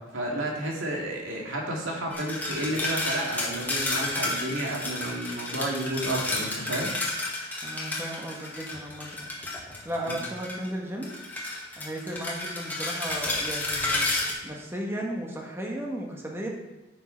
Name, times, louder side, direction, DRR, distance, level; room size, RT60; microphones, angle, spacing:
voice 1, 0.1-6.9 10.1-10.2, right 1 dB, 85° right, -1 dB, 2.2 m, -31 dB
sound 1, 2.1-10.7 11.0-14.3, left 2 dB, 10° left, 1.7 m, -31 dB
voice 2, 7.6-9.2 9.8-11.1 11.8-14.1 14.4-16.5, right 1 dB, 15° right, -1 dB, 1.2 m, -35 dB
10.0 x 6.1 x 4.4 m, 1.1 s
head